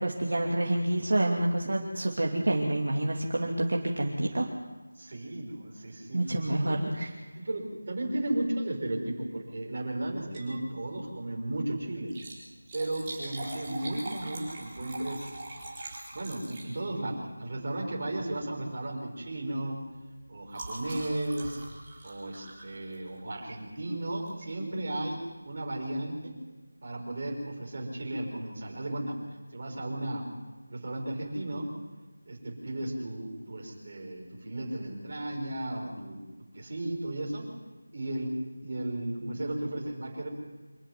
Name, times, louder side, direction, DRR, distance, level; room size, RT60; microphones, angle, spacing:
voice 1, 0.0-4.5 6.1-7.1, right 1 dB, 50° right, -1 dB, 2.7 m, -28 dB
voice 2, 5.0-6.2 6.5-6.8 7.3-12.1 12.7-15.3 16.1-19.8 20.3-21.6 22.0-26.4 26.8-29.2 29.5-30.3 30.7-31.7 32.3-36.2 36.5-37.5 37.9-38.3 38.6-40.3, right 1 dB, 30° right, -1 dB, 5.5 m, -34 dB
Liquid, 10.2-10.6 10.9-11.0 12.0-17.1 18.1-18.4 18.7-18.9 19.2-23.3 24.3-24.5 25.1-25.2 25.3-25.4, right 2 dB, 10° right, 4.3 m, -43 dB
26.5 x 12.5 x 9.6 m, 1.3 s
figure-of-eight pair, 180°, 0 cm